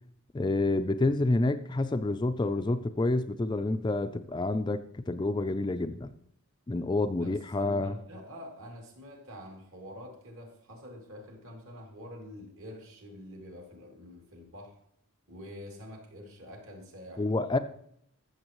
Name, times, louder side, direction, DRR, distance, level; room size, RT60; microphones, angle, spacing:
voice 1, 0.3-6.1 6.7-7.9 17.2-17.6, left 2 dB, 20° left, 9 dB, 0.3 m, -28 dB
voice 2, 7.2-14.8 15.3-17.6, equal, 65° right, 0 dB, 2.8 m, -47 dB
14.5 x 7.0 x 3.0 m, 0.69 s
head